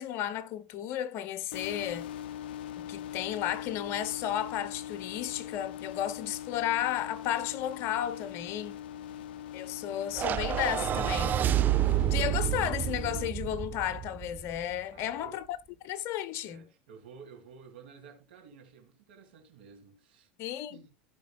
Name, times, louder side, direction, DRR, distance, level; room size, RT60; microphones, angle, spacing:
voice 1, 0.0-2.1 2.8-8.8 9.5-11.4 12.1-15.6 15.8-16.7 20.4-20.9, left 11 dB, 55° left, 0.8 m, -33 dB
sound 1, 1.5-13.3, left 10 dB, 80° left, 0.4 m, -42 dB
voice 2, 8.8-9.5 14.9-15.4 16.4-20.3 20.7-20.9, right 6 dB, 80° right, 2.7 m, -53 dB
sound 2, 10.1-14.6, right 11 dB, 35° right, 0.6 m, -29 dB
15.0 x 5.2 x 2.3 m
hypercardioid pair, 95°, 5 cm